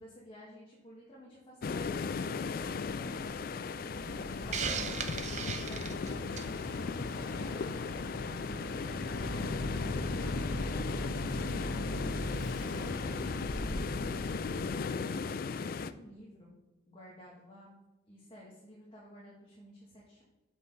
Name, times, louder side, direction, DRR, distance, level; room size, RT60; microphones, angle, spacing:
voice 1, 0.0-3.9 4.4-11.5 12.7-15.4 15.7-16.6 16.9-17.7 18.1-20.2, equal, 25° left, -5 dB, 1.7 m, -53 dB
sound 1, 1.6-15.9, left 5 dB, 50° left, 0.3 m, -37 dB
Boat Water vehicle, 3.9-14.7, left 1 dB, 75° left, 0.9 m, -39 dB
Hiss, 4.5-6.6, right 6 dB, 35° right, 0.6 m, -36 dB
6.4 x 6.0 x 5.6 m, 1.1 s
head